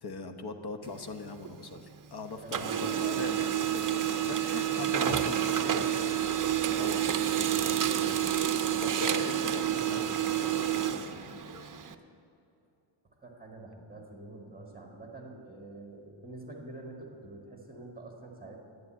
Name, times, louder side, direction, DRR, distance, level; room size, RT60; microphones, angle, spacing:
voice 1, 0.0-4.0 4.3-8.4 8.8-12.0, left 3 dB, 50° left, 7 dB, 1.1 m, -41 dB
Printer, 0.8-2.1 2.4-11.9, right 10 dB, 40° right, 0.6 m, -29 dB
voice 2, 2.4-3.0 9.6-10.1 13.2-18.6, right 2 dB, 20° right, 0 dB, 1.8 m, -46 dB
11.0 x 9.4 x 8.7 m, 2.7 s
wide cardioid pair, 145°, 49 cm